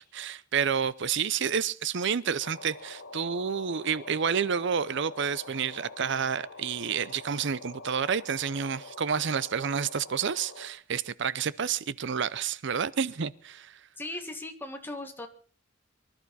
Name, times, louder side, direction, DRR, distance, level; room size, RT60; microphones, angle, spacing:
voice 1, 0.0-13.8, right 7 dB, 65° right, 0.6 m, -29 dB
sound 1, 2.4-10.7, left 3 dB, 85° left, 2.6 m, -46 dB
voice 2, 14.0-15.3, left 2 dB, 10° left, 1.8 m, -38 dB
24.0 x 12.0 x 4.2 m
head